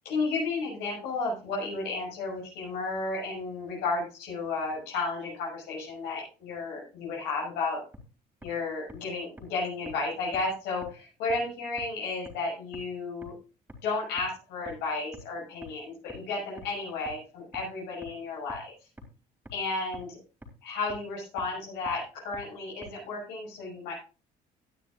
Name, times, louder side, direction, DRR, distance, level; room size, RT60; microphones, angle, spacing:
voice 1, 0.0-7.8 8.4-13.3 13.8-18.7 19.5-20.2 20.6-23.9, left 3 dB, 90° left, -4 dB, 6.5 m, -33 dB
sound 1, 7.9-8.0 8.4-8.5 8.9-9.0 9.4-9.5 9.9-10.0 10.3-10.4 10.8-10.9 11.3-11.4 11.8-11.9 12.3-12.4 12.7-12.8 13.2-13.3 13.7-13.8 14.2-14.3 14.7-14.8 15.1-15.2 15.6-15.7 16.1-16.2 16.6-16.7 17.1-17.2 17.5-17.6 18.0-18.1 18.5-18.6 19.0-19.1 19.5-19.6 19.9-20.0 20.4-20.5 20.9-21.0 21.4-21.5 21.9-22.0 22.3-22.4 22.8-22.9, right 1 dB, 10° right, 2.7 m, -46 dB
16.5 x 9.5 x 2.5 m, 0.34 s
cardioid pair, 110°, 17 cm